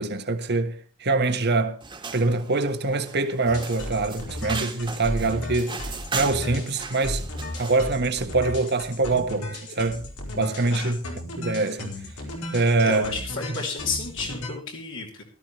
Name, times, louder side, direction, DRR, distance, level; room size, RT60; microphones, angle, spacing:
voice 1, 0.0-1.8 2.1-7.2 7.6-10.0 10.4-11.0 11.4-11.9 12.5-13.1, right 3 dB, 50° right, 1.5 m, -24 dB
sound 1, 1.8-7.9, right 4 dB, 20° right, 1.9 m, -37 dB
sound 2, 3.5-14.5, left 1 dB, 85° left, 4.5 m, -35 dB
voice 2, 12.8-15.2, left 4 dB, 60° left, 3.2 m, -32 dB
17.5 x 13.5 x 3.2 m
head